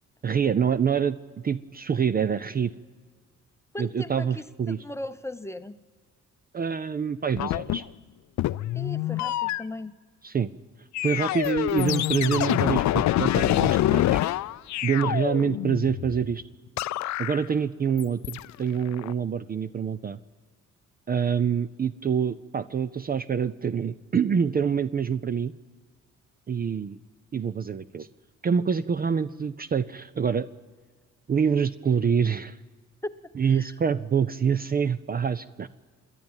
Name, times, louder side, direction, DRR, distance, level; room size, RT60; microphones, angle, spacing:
voice 1, 0.2-1.2 1.4-2.7 3.8-4.8 6.5-7.8 10.2-10.5 11.0-14.2 14.8-16.4 17.2-20.2 21.1-25.5 26.5-27.0 27.3-28.1 28.4-30.5 31.3-32.6 33.4-35.7, right 7 dB, 30° right, 14 dB, 0.5 m, -26 dB
voice 2, 3.7-4.3 4.7-5.8 8.7-10.0 33.0-33.7, left 1 dB, 10° left, 11 dB, 0.8 m, -37 dB
sound 1, 7.4-7.8 8.4-9.6 10.9-16.4 16.8-17.4 18.0-18.5 18.9-19.1, left 14 dB, 65° left, 0.5 m, -26 dB
27.0 x 10.5 x 8.9 m, 1.5 s
cardioid pair, 90°, 30 cm